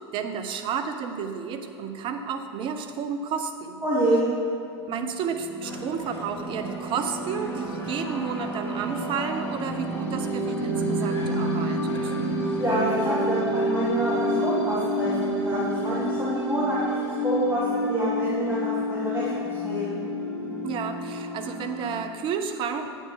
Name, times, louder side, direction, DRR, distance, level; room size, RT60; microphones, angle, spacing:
voice 1, 0.0-3.8 4.9-12.1 20.6-22.9, right 6 dB, 35° right, 7 dB, 0.7 m, -31 dB
voice 2, 3.8-4.2 12.6-19.9, right 1 dB, 15° right, -8 dB, 2.0 m, -27 dB
sound 1, 4.9-21.9, equal, 15° left, 2.2 m, -29 dB
sound 2, 5.6-16.2, left 1 dB, 65° left, 1.9 m, -45 dB
9.1 x 8.0 x 3.9 m, 2.7 s
figure-of-eight pair, 90°, 15 cm